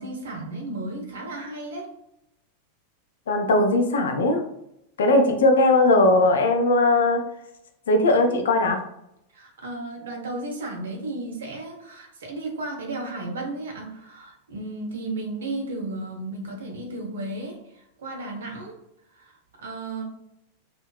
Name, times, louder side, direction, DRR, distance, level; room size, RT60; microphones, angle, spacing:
voice 1, 0.0-1.9 9.3-18.7 19.1-20.0, right 2 dB, 65° right, 1 dB, 0.7 m, -34 dB
voice 2, 3.3-4.4 5.0-7.2 7.9-8.8, left 2 dB, 65° left, 5 dB, 0.4 m, -19 dB
2.7 x 2.2 x 2.3 m, 0.79 s
figure-of-eight pair, 90°, 0 cm